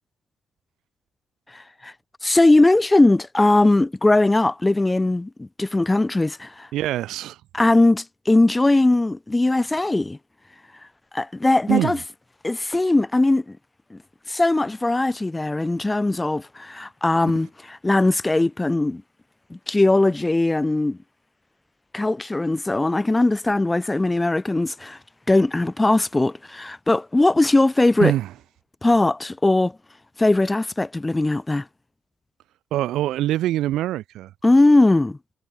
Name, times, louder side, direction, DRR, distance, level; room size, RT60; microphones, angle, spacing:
voice 1, 1.5-1.9 2.2-6.7 7.5-10.2 11.1-12.0 12.4-13.6 13.9-14.0 14.3-17.5 17.8-19.0 19.5-21.0 21.9-25.0 25.3-28.1 28.8-29.7 30.2-31.6 34.4-35.2, left 2 dB, 15° left, 0.3 m, -19 dB
voice 2, 6.7-7.4 11.7-12.0 28.0-28.3 32.7-34.3, right 14 dB, 85° right, 0.8 m, -24 dB
cardioid pair, 90°, 0 cm